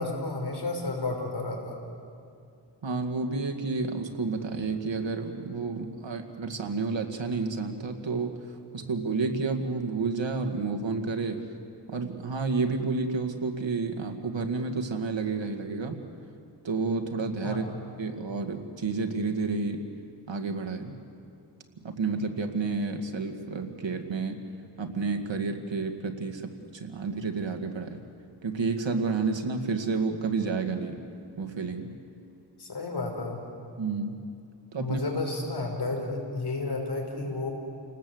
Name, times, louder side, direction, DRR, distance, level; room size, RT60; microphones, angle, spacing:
voice 1, 0.0-1.8 17.4-17.8 32.6-33.4 34.8-37.5, left 3 dB, 65° left, 0 dB, 5.5 m, -32 dB
voice 2, 2.8-11.5 11.9-16.0 16.6-17.7 18.0-19.8 20.3-21.0 21.8-24.4 24.8-28.0 28.4-31.0 31.4-31.9 33.8-34.2 34.7-35.0, right 4 dB, 85° right, 5 dB, 2.0 m, -30 dB
29.5 x 19.5 x 7.9 m, 2.5 s
wide cardioid pair, 65°, 44 cm